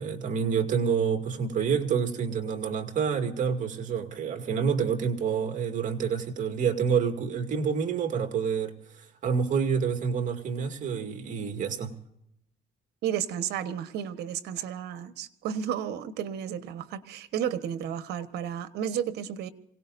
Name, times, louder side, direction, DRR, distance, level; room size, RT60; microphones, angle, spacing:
voice 1, 0.0-11.9, right 6 dB, 50° right, 2.3 m, -28 dB
voice 2, 13.0-19.5, right 9 dB, 75° right, 1.2 m, -32 dB
26.0 x 18.0 x 2.6 m
cardioid pair, 110°, 17 cm